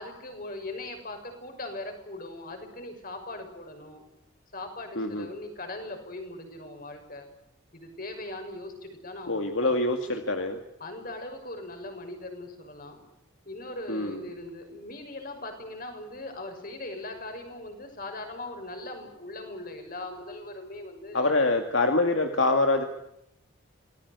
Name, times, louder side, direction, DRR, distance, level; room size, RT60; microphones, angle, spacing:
voice 1, 0.0-4.0 4.5-7.3 7.7-9.7 10.8-13.0 13.4-21.4, left 2 dB, 45° left, 5 dB, 6.3 m, -40 dB
voice 2, 5.0-5.3 9.3-10.6 13.9-14.3 21.1-22.8, left 2 dB, 70° left, 5 dB, 2.2 m, -25 dB
27.5 x 19.5 x 8.3 m, 0.83 s
head